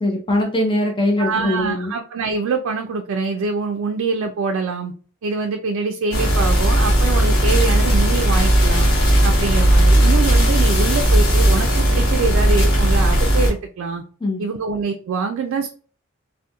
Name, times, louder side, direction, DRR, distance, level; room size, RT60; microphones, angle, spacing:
voice 1, 0.0-1.9 14.2-14.4, left 1 dB, 25° left, 0 dB, 0.5 m, -21 dB
voice 2, 1.2-4.9 5.2-8.9 9.2-14.0 14.4-15.7, right 4 dB, 85° right, 4 dB, 0.3 m, -24 dB
sound 1, 6.1-13.5, right 1 dB, 90° left, 0.9 m, -16 dB
2.3 x 2.1 x 2.8 m, 0.40 s
head